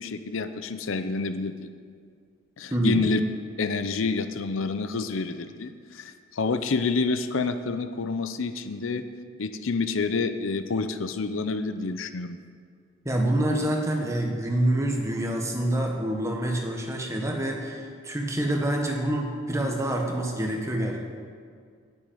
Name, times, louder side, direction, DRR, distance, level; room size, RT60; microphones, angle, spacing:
voice 1, 0.0-1.7 2.6-3.2 3.6-9.0 9.4-12.4, left 4 dB, 75° left, 10 dB, 0.6 m, -28 dB
voice 2, 2.7-3.1 13.0-21.0, right 1 dB, 15° right, 1 dB, 1.4 m, -26 dB
9.4 x 7.9 x 9.1 m, 2.1 s
head